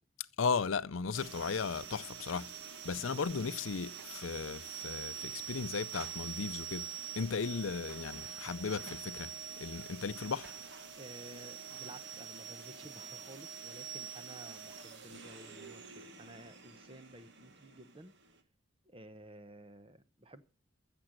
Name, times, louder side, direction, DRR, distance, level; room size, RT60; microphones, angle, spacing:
voice 1, 0.4-2.5 2.8-10.5, left 5 dB, 70° left, 0.6 m, -36 dB
sound 1, 1.1-18.4, right 7 dB, 55° right, 1.5 m, -46 dB
voice 2, 11.0-18.1 18.8-20.4, right 1 dB, 25° right, 0.8 m, -53 dB
15.0 x 6.9 x 6.4 m
head